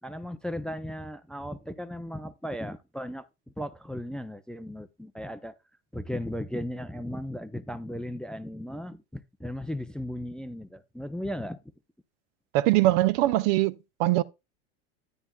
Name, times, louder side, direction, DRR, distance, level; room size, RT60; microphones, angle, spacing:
voice 1, 0.0-3.3 3.6-5.6 5.9-11.6, left 1 dB, ahead, 0.5 m, -36 dB
voice 2, 12.5-14.2, right 16 dB, 55° right, 0.6 m, -22 dB
10.5 x 9.7 x 2.3 m
hypercardioid pair, 100°, 33 cm